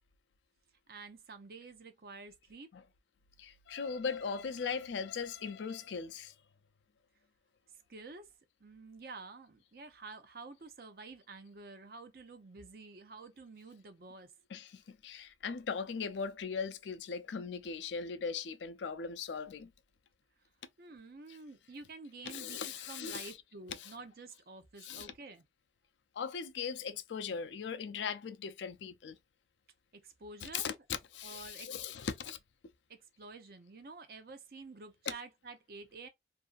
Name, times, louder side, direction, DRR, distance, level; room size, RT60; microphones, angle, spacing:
voice 1, 0.9-2.7 7.9-8.3 8.6-14.3 20.8-25.4 29.9-30.8 31.2-31.8 32.9-36.1, right 3 dB, 55° right, 0.6 m, -49 dB
voice 2, 3.4-6.3 14.5-19.7 22.3-23.3 23.8-23.9 24.8-25.1 26.2-29.2 30.4-30.7 31.1-32.4, left 6 dB, 80° left, 0.4 m, -39 dB
2.6 x 2.4 x 2.4 m
head